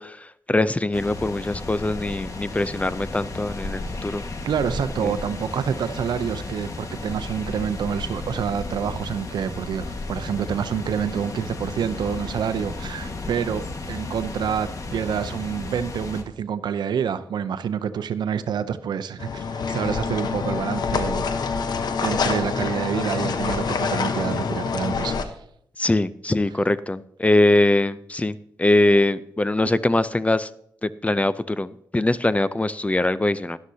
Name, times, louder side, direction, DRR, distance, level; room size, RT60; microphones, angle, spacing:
voice 1, 0.0-4.2 5.0-5.1 25.8-30.5 30.8-33.6, left 2 dB, 20° left, 15 dB, 0.5 m, -22 dB
sound 1, 0.9-16.2, left 3 dB, 50° left, 1.6 m, -34 dB
voice 2, 4.4-21.3 22.0-25.3, right 8 dB, 80° right, 12 dB, 0.6 m, -27 dB
sound 2, 19.2-25.3, left 5 dB, 70° left, 1.0 m, -26 dB
13.0 x 11.5 x 2.8 m, 0.70 s
cardioid pair, 60°, 7 cm